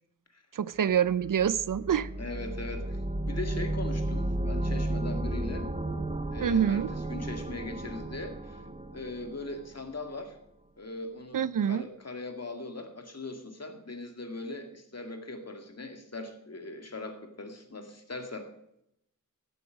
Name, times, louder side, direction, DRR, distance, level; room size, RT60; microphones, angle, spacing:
voice 1, 0.5-2.1 6.4-6.9 11.3-11.8, right 8 dB, 65° right, 18 dB, 0.5 m, -26 dB
sound 1, 1.1-9.9, right 1 dB, 20° right, 0.9 m, -33 dB
voice 2, 2.2-3.0 3.3-5.7 6.3-8.6 8.9-10.4 10.8-18.5, left 2 dB, 45° left, 5 dB, 2.1 m, -40 dB
15.0 x 8.3 x 5.2 m, 0.78 s
wide cardioid pair, 60°, 34 cm